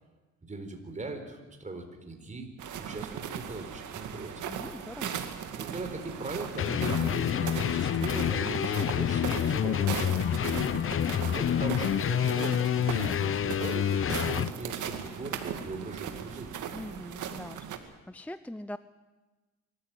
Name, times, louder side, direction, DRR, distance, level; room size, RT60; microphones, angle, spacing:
voice 1, 0.4-2.5 2.8-4.4 5.5-10.3 11.2-16.5, right 3 dB, 25° right, 4 dB, 4.4 m, -40 dB
sound 1, 2.6-17.8, right 8 dB, 80° right, 2.2 m, -38 dB
voice 2, 4.5-5.2 16.7-18.8, left 1 dB, 5° left, 13 dB, 0.6 m, -42 dB
sound 2, 6.6-14.5, left 9 dB, 45° left, 0.7 m, -28 dB
24.5 x 15.0 x 9.1 m, 1.2 s
cardioid pair, 90°, 30 cm